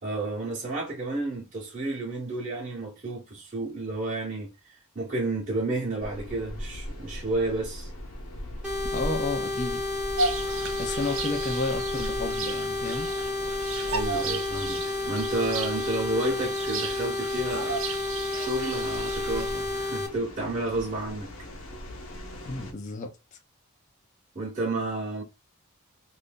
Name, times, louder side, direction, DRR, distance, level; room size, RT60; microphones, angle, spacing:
voice 1, 0.0-7.9 13.9-17.9 18.4-21.3 24.3-25.2, right 2 dB, 35° right, 1.0 m, -31 dB
sound 1, 6.0-22.7, equal, 65° left, 1.0 m, -40 dB
sound 2, 8.6-20.1, left 2 dB, 5° right, 0.8 m, -31 dB
voice 2, 8.9-9.8 10.7-13.1 22.5-23.4, left 3 dB, 35° left, 0.5 m, -32 dB
Bird vocalization bird call bird song, 10.2-19.8, right 4 dB, 60° right, 0.6 m, -35 dB
2.7 x 2.6 x 3.5 m
head